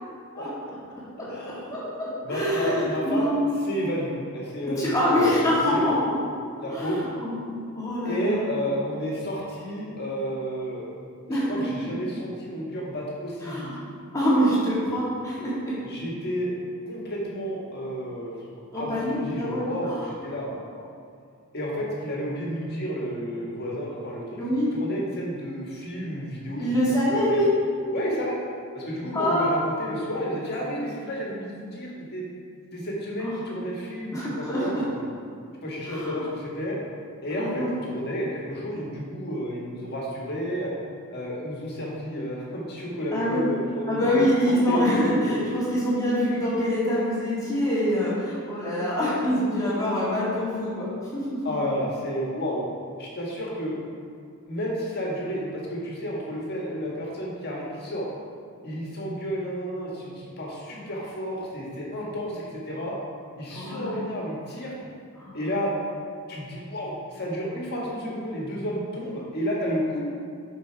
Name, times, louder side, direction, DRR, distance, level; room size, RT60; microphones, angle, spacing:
voice 1, 1.1-1.8 2.2-3.3 3.6-5.8 6.6-7.0 8.0-10.8 11.3-13.6 15.8-16.5 16.9-18.3 18.7-20.8 21.5-24.4 24.7-26.7 27.3-27.4 27.9-28.4 28.7-32.2 32.7-35.0 35.6-36.8 37.2-40.7 41.1-44.8 51.4-52.6 53.0-53.8 54.5-58.0 58.6-62.9 63.3-64.8 65.3-65.7 66.3-70.0, equal, 50° left, -4 dB, 1.7 m, -31 dB
voice 2, 1.7-3.5 4.8-6.1 6.7-7.4 7.7-8.4 11.3-11.5 13.4-13.8 14.1-15.7 18.7-20.1 24.4-24.7 26.6-27.5 29.1-29.5 33.2-33.3 34.1-34.8 35.9-36.2 37.3-37.7 43.1-43.4 43.9-51.5 63.5-64.0 65.2-65.4, equal, 15° left, -9 dB, 1.9 m, -25 dB
7.3 x 5.6 x 4.6 m, 2.2 s
head